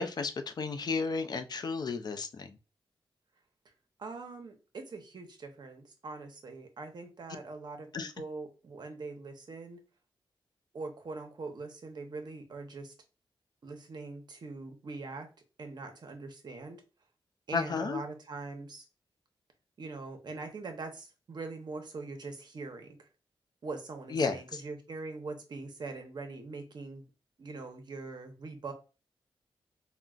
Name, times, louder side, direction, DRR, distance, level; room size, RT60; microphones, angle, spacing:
voice 1, 0.0-2.6 7.9-8.1 17.5-18.0 24.1-24.6, left 4 dB, 50° left, 0.4 m, -33 dB
voice 2, 4.0-9.8 10.7-12.9 13.6-15.3 15.6-16.8 17.5-18.8 19.8-23.1 23.6-27.0 27.4-28.7, right 3 dB, 55° right, 0.7 m, -42 dB
3.7 x 2.1 x 2.3 m
wide cardioid pair, 90°, 9 cm